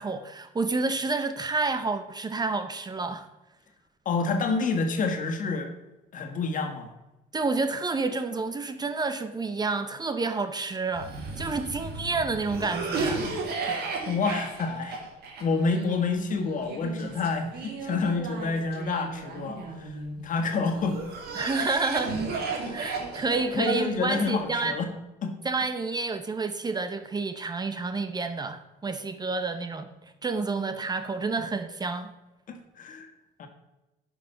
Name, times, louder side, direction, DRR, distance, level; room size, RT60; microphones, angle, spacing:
voice 1, 0.0-3.3 7.3-11.1 11.4-13.3 21.3-22.2 22.7-24.8 25.4-29.9 30.2-32.1, right 3 dB, 25° right, 9 dB, 0.7 m, -29 dB
voice 2, 4.0-5.7 6.1-6.9 13.7-15.0 15.4-21.0 22.6-22.7 23.5-24.9 25.2-25.3 32.5-33.1 33.4-33.5, left 4 dB, 50° left, 5 dB, 1.7 m, -28 dB
Cough, 10.9-20.1 20.7-24.6, right 4 dB, 70° right, 2.3 m, -34 dB
9.9 x 5.5 x 5.7 m, 1.0 s
cardioid pair, 110°, 17 cm